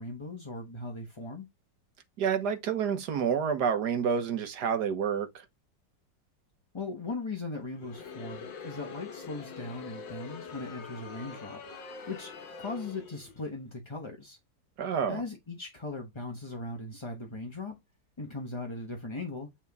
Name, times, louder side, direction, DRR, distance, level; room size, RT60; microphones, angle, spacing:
voice 1, 0.0-1.5 6.7-11.6 12.1-14.4 15.1-17.8 18.2-19.5, left 3 dB, 20° left, 0.8 m, -39 dB
voice 2, 2.2-5.4 14.8-15.2, right 7 dB, 65° right, 1.6 m, -29 dB
Crowd, 7.7-13.4, left 5 dB, 85° left, 1.8 m, -44 dB
8.6 x 3.6 x 3.5 m
omnidirectional pair, 1.9 m